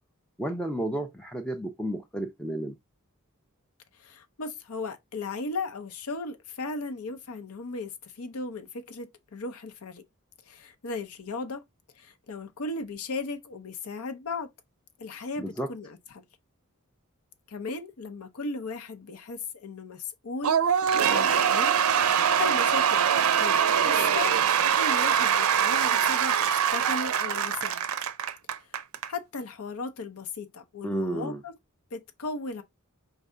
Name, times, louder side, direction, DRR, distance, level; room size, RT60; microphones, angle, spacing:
voice 1, 0.4-2.8 15.4-15.7 30.8-31.4, right 1 dB, 5° left, 0.4 m, -32 dB
voice 2, 4.0-10.0 10.5-11.6 11.9-14.5 15.0-16.2 17.5-21.8 22.4-24.4 24.6-27.9 29.1-31.5 31.9-32.6, left 3 dB, 80° left, 0.7 m, -36 dB
Cheering / Applause / Crowd, 20.4-29.1, right 8 dB, 75° right, 0.5 m, -23 dB
4.6 x 3.3 x 2.5 m
head